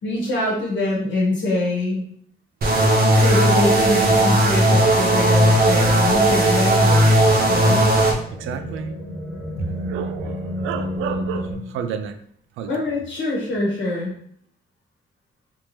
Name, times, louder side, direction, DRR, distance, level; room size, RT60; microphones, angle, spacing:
voice 1, 0.0-2.0 3.2-7.9 9.6-9.7 12.7-14.1, left 2 dB, 70° left, -4 dB, 1.2 m, -24 dB
sound 1, 2.6-8.1, right 1 dB, 50° right, 0.9 m, -16 dB
sound 2, 6.6-11.5, equal, 5° left, 1.1 m, -32 dB
voice 2, 8.4-9.0 9.7-12.1 12.6-12.7, right 7 dB, 85° right, 7 dB, 0.4 m, -30 dB
3.5 x 2.8 x 3.1 m, 0.64 s
cardioid pair, 90°, 20 cm